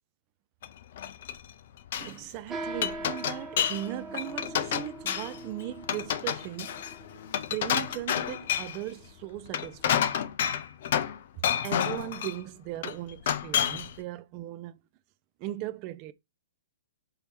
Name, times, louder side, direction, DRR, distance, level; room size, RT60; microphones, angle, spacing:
Glass, 0.6-1.5 1.8-2.1 2.5-3.9 4.1-5.4 5.8-8.8 9.4-11.2 11.4-12.4 12.8-13.9, left 9 dB, 50° left, 0.5 m, -29 dB
voice 1, 2.0-6.8 7.5-10.2 11.6-14.8 15.4-16.1, right 14 dB, 35° right, 0.4 m, -38 dB
sound 1, 2.5-10.3, right 2 dB, 10° right, 0.8 m, -43 dB
5.3 x 2.8 x 3.4 m
figure-of-eight pair, 120°, 0 cm